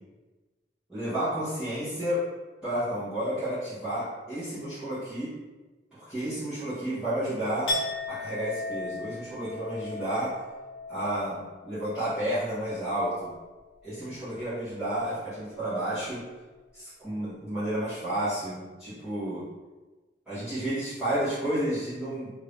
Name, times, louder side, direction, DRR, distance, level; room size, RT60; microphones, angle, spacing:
voice 1, 0.9-2.2 2.6-5.3 5.9-7.7 8.1-10.3 10.9-13.3 13.8-16.2 16.7-19.4 20.3-22.3, right 1 dB, 5° right, -15 dB, 1.1 m, -31 dB
Chink clink, 7.7-13.6 13.9-14.3, left 2 dB, 70° left, 1.0 m, -37 dB
2.7 x 2.6 x 3.4 m, 1.2 s
head